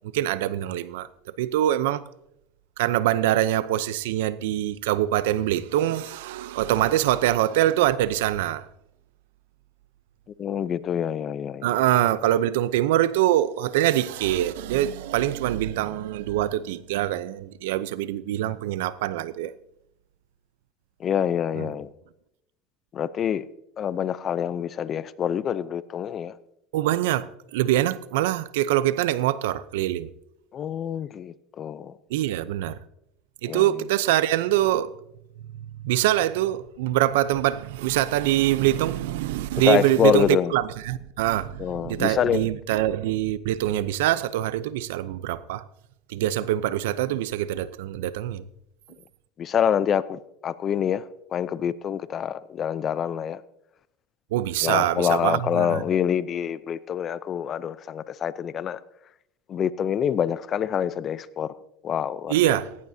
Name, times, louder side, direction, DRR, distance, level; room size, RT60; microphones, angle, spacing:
voice 1, 0.1-1.1 1.4-2.0 2.8-8.7 11.6-19.5 21.5-21.8 26.7-27.3 27.5-30.1 32.1-32.8 33.4-34.9 35.6-45.6 46.1-48.5 54.3-55.8 62.3-62.8, right 13 dB, 85° right, 0.7 m, -24 dB
voice 2, 10.4-11.7 21.0-21.9 22.9-23.4 23.8-26.4 30.5-31.9 33.5-33.6 39.6-40.5 41.6-42.5 49.4-51.0 51.3-53.4 54.6-58.8 59.5-61.5 61.8-62.6, left 9 dB, 35° left, 0.7 m, -26 dB
17.0 x 17.0 x 2.8 m
supercardioid pair, 120°, 0 cm